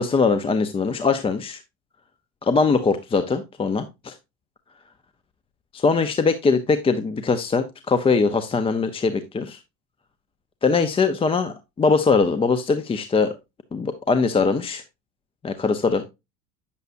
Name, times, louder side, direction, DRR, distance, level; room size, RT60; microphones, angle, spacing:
voice 1, 0.0-1.6 2.4-4.1 5.7-9.6 10.6-13.3 13.7-14.8 15.4-16.0, left 4 dB, 15° left, 0.5 m, -21 dB
9.3 x 6.9 x 2.5 m
supercardioid pair, 110°, 44 cm